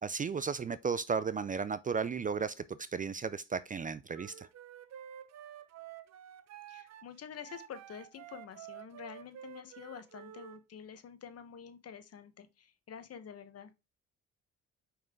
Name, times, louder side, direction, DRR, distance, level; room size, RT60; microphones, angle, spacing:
voice 1, 0.0-4.5, right 5 dB, 25° right, 0.4 m, -34 dB
Wind instrument woodwind instrument, 4.1-10.6, right 10 dB, 60° right, 0.7 m, -50 dB
voice 2, 6.7-13.7, left 8 dB, 55° left, 1.1 m, -48 dB
5.6 x 5.2 x 3.7 m
cardioid pair, 90°, 30 cm